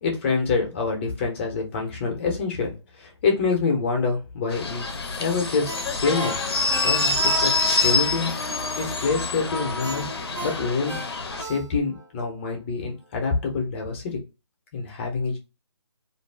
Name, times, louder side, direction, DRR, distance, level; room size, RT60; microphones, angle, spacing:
voice 1, 0.0-4.9 5.2-6.4 6.8-7.5 7.8-8.4 8.8-10.1 10.4-11.0 11.4-14.2 14.7-15.4, left 4 dB, 25° left, 2 dB, 0.8 m, -26 dB
sound 1, 4.5-11.4, left 3 dB, 55° left, 0.7 m, -26 dB
Ringtone, 5.6-7.9 8.3-8.4 9.8-12.1 12.5-12.6, right 2 dB, 10° right, 0.7 m, -37 dB
2.6 x 2.3 x 3.3 m, 0.28 s
figure-of-eight pair, 145°, 15 cm